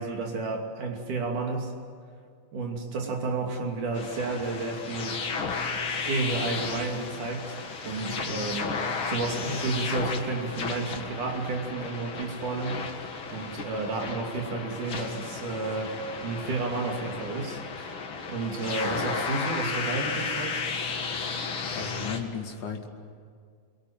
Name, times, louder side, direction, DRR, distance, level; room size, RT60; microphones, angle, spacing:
voice 1, 0.0-1.8 2.5-5.2 6.1-7.6 7.9-12.9 13.3-16.0 16.2-18.0 18.3-20.6, right 3 dB, 80° right, 2 dB, 4.3 m, -31 dB
sound 1, 3.9-22.2, left 4 dB, 45° left, 2.4 m, -33 dB
voice 2, 21.8-22.9, left 6 dB, 75° left, 2 dB, 3.6 m, -35 dB
26.0 x 23.5 x 9.0 m, 2.1 s
omnidirectional pair, 3.5 m